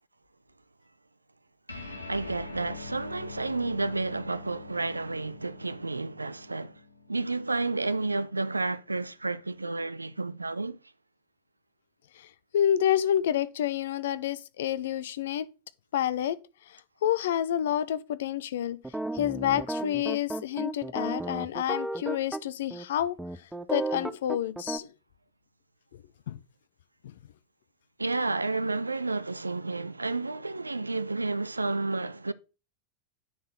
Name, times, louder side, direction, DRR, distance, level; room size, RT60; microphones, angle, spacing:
sound 1, 1.7-8.4, left 3 dB, 80° left, 1.0 m, -45 dB
voice 1, 2.1-6.7 7.1-10.8 28.0-32.3, right 3 dB, 80° right, 0.4 m, -31 dB
voice 2, 12.5-15.5 15.9-16.4 17.0-18.8 19.1-23.2 23.7-24.9 26.3-26.4 27.0-27.1, left 10 dB, 60° left, 0.5 m, -28 dB
sound 2, 18.8-22.4 22.7-22.8 23.2-24.8, right 2 dB, 5° right, 0.5 m, -33 dB
9.4 x 4.0 x 3.9 m
figure-of-eight pair, 90°, 0 cm